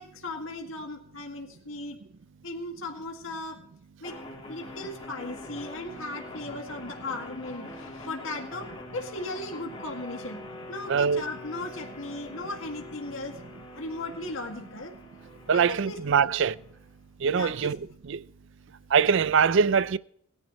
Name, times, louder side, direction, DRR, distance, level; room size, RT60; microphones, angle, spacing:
voice 1, 0.0-2.0 2.4-3.6 4.0-4.2 4.5-10.4 10.7-13.4 13.7-14.9 15.5-16.4 17.3-17.7, left 2 dB, 65° left, 2.1 m, -37 dB
sound 1, 4.0-17.0, left 1 dB, 25° left, 3.4 m, -44 dB
voice 2, 10.9-11.2 15.5-16.5 17.2-17.8 18.9-20.0, right 6 dB, 55° right, 0.4 m, -22 dB
22.0 x 11.0 x 3.1 m
head